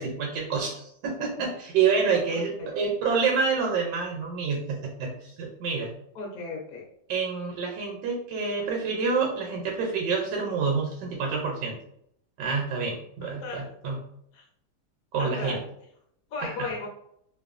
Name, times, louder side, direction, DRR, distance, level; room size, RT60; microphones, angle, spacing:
voice 1, 0.0-5.9 7.1-11.8 12.4-14.0 15.1-15.6 16.4-16.7, right 5 dB, 80° right, 0 dB, 1.2 m, -28 dB
voice 2, 2.3-2.7 6.1-6.8 13.2-13.8 14.3-14.4 15.2-15.6 16.3-16.9, left 3 dB, 65° left, -1 dB, 1.0 m, -36 dB
2.9 x 2.2 x 2.4 m, 0.72 s
omnidirectional pair, 1.9 m